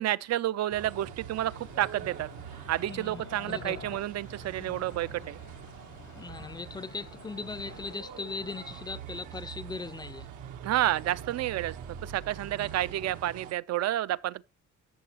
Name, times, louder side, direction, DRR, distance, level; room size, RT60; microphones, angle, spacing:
voice 1, 0.0-2.3 2.7-5.4 10.6-11.7 12.0-14.4, right 13 dB, 60° right, 0.5 m, -30 dB
sound 1, 0.7-13.5, right 8 dB, 80° right, 1.0 m, -44 dB
sound 2, 1.5-8.0, left 9 dB, 65° left, 1.1 m, -50 dB
voice 2, 2.9-3.2 3.5-3.8 6.1-10.3, left 4 dB, 15° left, 0.4 m, -39 dB
13.5 x 6.8 x 2.9 m
cardioid pair, 90°, 30 cm